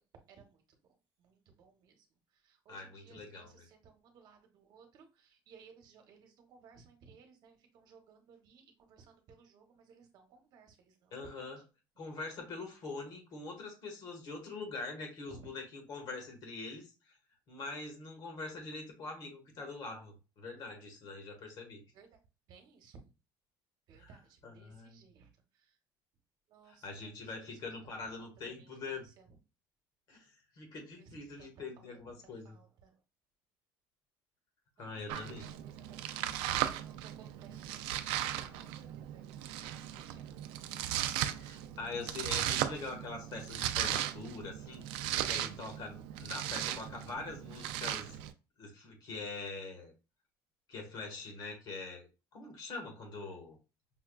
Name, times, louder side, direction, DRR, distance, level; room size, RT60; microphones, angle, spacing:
voice 1, 0.3-2.1 2.3-11.5 15.3-15.5 21.9-22.1 22.5-23.0 23.9-25.8 26.5-27.6 28.2-29.3 31.0-31.9 32.2-33.0 34.8-35.0 35.3-37.8 38.2-40.5, right 5 dB, 50° right, 5 dB, 1.0 m, -60 dB
voice 2, 2.7-3.6 11.1-11.6 12.0-17.2 17.5-21.8 24.0-24.1 24.4-25.0 26.7-29.1 30.1-32.6 34.8-35.5 41.4-48.3 48.6-49.9 50.7-53.6, left 3 dB, 50° left, 3 dB, 1.4 m, -44 dB
Domestic sounds home sounds, 35.1-48.3, right 12 dB, 85° right, 0.4 m, -37 dB
5.7 x 2.3 x 2.3 m, 0.30 s
cardioid pair, 150°, 9 cm